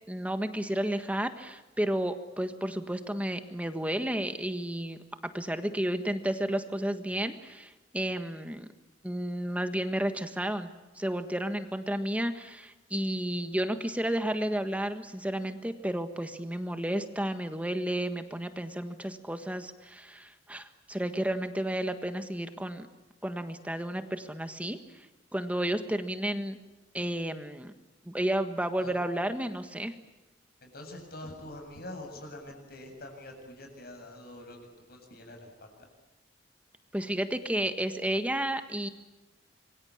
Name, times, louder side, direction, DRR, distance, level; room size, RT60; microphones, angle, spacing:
voice 1, 0.1-5.0 5.3-8.7 9.0-10.7 10.9-22.9 23.2-25.1 25.3-26.6 26.9-27.7 28.1-29.9 36.9-38.9, right 1 dB, 10° right, 8 dB, 1.5 m, -32 dB
voice 2, 30.6-34.6 34.9-35.9, left 1 dB, 55° left, 3 dB, 7.9 m, -45 dB
26.5 x 23.5 x 8.7 m, 1.0 s
head